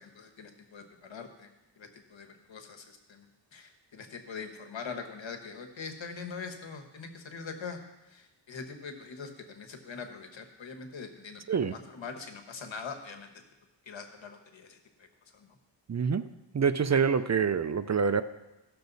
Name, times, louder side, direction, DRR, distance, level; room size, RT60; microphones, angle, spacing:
voice 1, 0.0-3.3 3.5-7.8 8.1-13.4 13.8-15.1 15.3-15.6, left 5 dB, 80° left, 4 dB, 1.4 m, -43 dB
voice 2, 15.9-16.3 16.5-18.2, right 6 dB, 40° right, 12 dB, 0.5 m, -26 dB
16.5 x 6.6 x 4.0 m, 0.99 s
wide cardioid pair, 75°, 45 cm